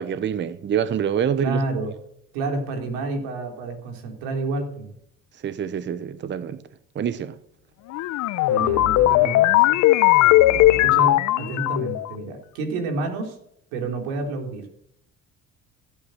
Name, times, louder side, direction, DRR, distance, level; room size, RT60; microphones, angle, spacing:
voice 1, 0.0-1.6 5.4-6.6 6.9-7.3, right 8 dB, 35° right, 0.8 m, -26 dB
voice 2, 1.4-1.9 2.3-4.9 8.4-9.8 10.5-13.4 13.7-14.7, right 3 dB, 90° right, 3.6 m, -29 dB
sound 1, 7.9-12.1, left 16 dB, 65° left, 0.8 m, -18 dB
16.0 x 8.9 x 6.5 m
supercardioid pair, 95°, 31 cm